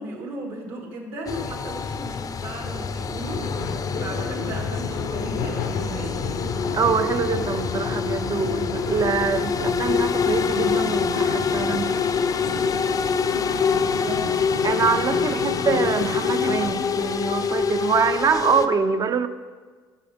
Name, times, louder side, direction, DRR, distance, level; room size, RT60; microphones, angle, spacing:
voice 1, 0.0-6.3 13.6-14.3 15.3-15.5, right 1 dB, 65° right, 0 dB, 2.5 m, -35 dB
sound 1, 1.3-18.7, left 6 dB, 35° left, 0.6 m, -26 dB
sound 2, 3.2-16.7, left 4 dB, 75° left, 0.7 m, -33 dB
voice 2, 6.7-12.1 14.6-19.3, right 6 dB, 35° right, 11 dB, 0.6 m, -24 dB
14.5 x 6.9 x 3.5 m, 1.5 s
hypercardioid pair, 60°, 10 cm